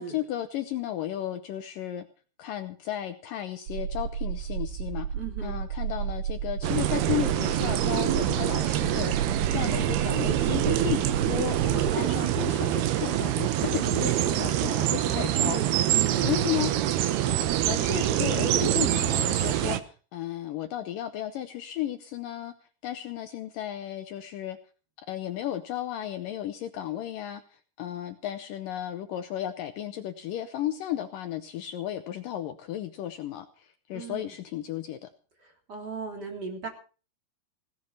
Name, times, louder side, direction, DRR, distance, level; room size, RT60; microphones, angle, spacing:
voice 1, 0.0-2.1 2.4-5.1 5.4-15.6 16.2-16.7 17.7-22.5 22.8-24.6 25.1-35.1, left 12 dB, 80° left, 8 dB, 2.0 m, -34 dB
sound 1, 3.7-11.9, right 8 dB, 55° right, 2.4 m, -32 dB
voice 2, 5.1-5.6 11.7-12.2 15.0-16.3 33.9-34.3 35.4-36.7, right 5 dB, 25° right, 3 dB, 3.4 m, -37 dB
sound 2, 6.6-19.8, right 12 dB, 75° right, 2.8 m, -25 dB
18.0 x 10.5 x 5.7 m, 0.39 s
omnidirectional pair, 5.0 m